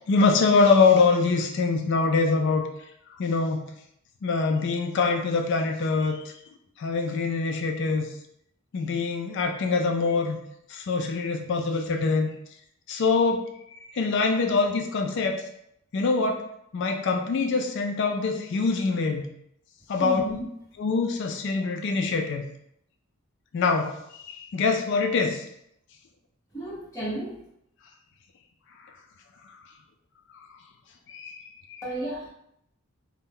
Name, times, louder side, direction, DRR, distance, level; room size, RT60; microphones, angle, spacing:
voice 1, 0.1-2.7 3.2-3.7 4.2-6.2 6.8-8.1 8.7-10.4 10.7-12.3 12.9-13.5 13.9-15.4 15.9-16.4 16.7-19.3 19.9-20.2 20.8-22.4 23.5-25.4 31.1-31.4 31.7-31.8, left 4 dB, 55° left, 4 dB, 0.3 m, -24 dB
voice 2, 20.0-20.4 26.5-27.3 31.8-32.3, right 1 dB, 15° left, -9 dB, 1.1 m, -32 dB
2.7 x 2.1 x 3.5 m, 0.74 s
head